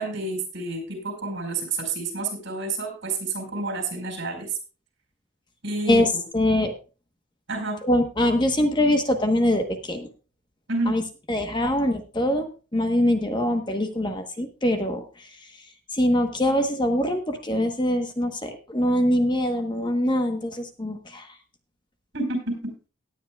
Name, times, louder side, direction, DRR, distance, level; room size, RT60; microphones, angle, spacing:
voice 1, 0.0-4.5 5.6-6.2 7.5-7.8 10.7-11.0 22.1-22.7, right 3 dB, 60° right, 5 dB, 4.8 m, -29 dB
voice 2, 5.9-6.7 7.8-10.1 10.9-11.0 11.3-15.3 15.9-21.3, left 1 dB, 20° left, 6 dB, 1.1 m, -23 dB
18.0 x 10.5 x 2.4 m, 0.34 s
head